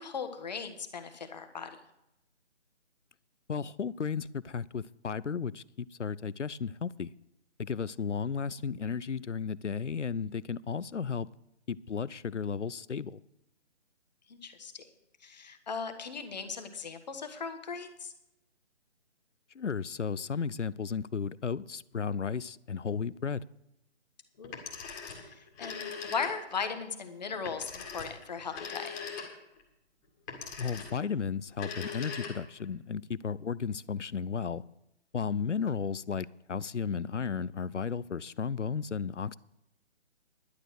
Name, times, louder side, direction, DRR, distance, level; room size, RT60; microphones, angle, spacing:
voice 1, 0.0-1.8 14.3-14.8 15.2-18.1 24.4-24.6 25.1-25.8 26.1-29.0, left 5 dB, 35° left, 1.4 m, -38 dB
voice 2, 3.5-7.1 7.6-11.3 11.7-13.2 19.5-23.5 30.6-34.6 35.1-39.4, left 6 dB, 85° left, 0.6 m, -34 dB
Telephone, 24.4-26.6 27.5-29.6 30.3-31.1 31.5-32.7, left 6 dB, 15° left, 1.9 m, -41 dB
11.5 x 9.7 x 6.3 m
figure-of-eight pair, 145°, 35 cm